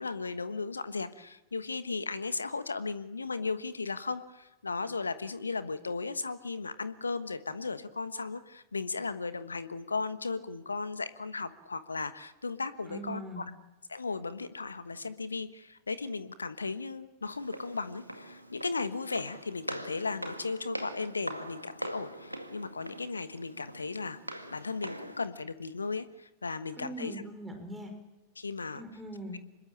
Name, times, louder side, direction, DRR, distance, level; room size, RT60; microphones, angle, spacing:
voice 1, 0.0-13.4 13.9-24.2 24.5-27.2 28.4-28.8, left 4 dB, 75° left, 13 dB, 1.2 m, -36 dB
voice 2, 12.9-13.5 26.8-28.0 28.8-29.4, right 1 dB, 10° right, 4 dB, 5.4 m, -41 dB
Walk footsteps, 17.2-25.2, right 1 dB, 90° right, 1.9 m, -42 dB
26.5 x 21.5 x 8.9 m, 0.98 s
figure-of-eight pair, 90°, 0 cm